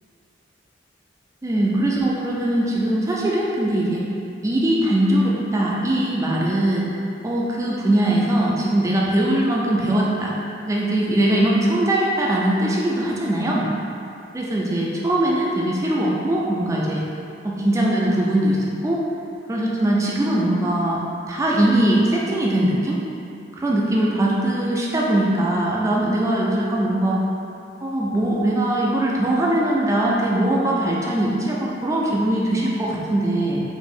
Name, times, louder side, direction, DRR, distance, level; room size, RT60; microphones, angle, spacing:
voice 1, 1.4-4.0 4.4-6.9 7.2-10.3 10.6-13.7 14.3-17.0 17.4-19.0 19.5-21.0 21.3-23.0 23.6-27.2 27.8-33.6, right 1 dB, 15° right, -4 dB, 0.4 m, -21 dB
4.0 x 2.5 x 3.6 m, 2.6 s
head